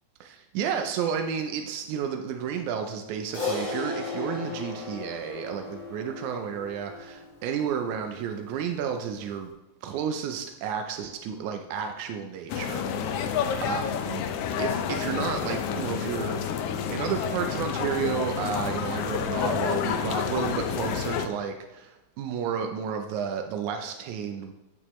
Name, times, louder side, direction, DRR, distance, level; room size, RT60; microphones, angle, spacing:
voice 1, 0.2-9.5 9.8-13.3 13.6-14.3 14.6-16.5 16.9-24.5, right 7 dB, 90° right, 5 dB, 2.0 m, -32 dB
Crash cymbal, 3.3-7.9, left 4 dB, 45° left, 2.8 m, -35 dB
sound 1, 12.5-21.3, left 7 dB, 75° left, 1.4 m, -29 dB
9.1 x 7.8 x 3.1 m, 0.99 s
omnidirectional pair, 3.3 m